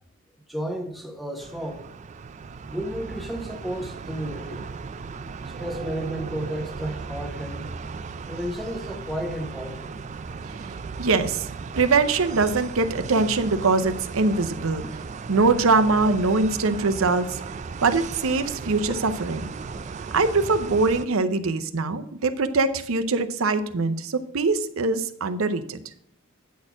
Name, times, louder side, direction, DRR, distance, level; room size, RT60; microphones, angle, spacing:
voice 1, 0.5-1.9 2.6-4.7 5.5-7.7 8.3-10.0 18.9-19.0 19.7-19.9, equal, ahead, 1.0 m, -33 dB
sound 1, 1.4-21.1, right 5 dB, 35° right, 0.3 m, -36 dB
voice 2, 11.0-11.5 11.7-14.9 15.3-17.4 17.8-19.5 20.1-25.8, right 3 dB, 70° right, 0.7 m, -22 dB
9.3 x 4.3 x 6.0 m
head